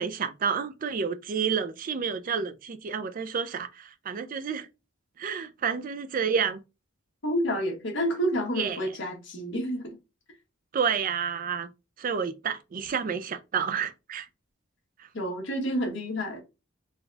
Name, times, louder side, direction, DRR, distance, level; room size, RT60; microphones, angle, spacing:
voice 1, 0.0-4.7 5.2-6.6 8.6-8.8 10.7-11.7 12.0-14.3, right 6 dB, 40° right, 0.4 m, -30 dB
voice 2, 7.2-9.9 15.1-16.4, equal, 60° left, 1.3 m, -29 dB
4.0 x 2.3 x 3.8 m
head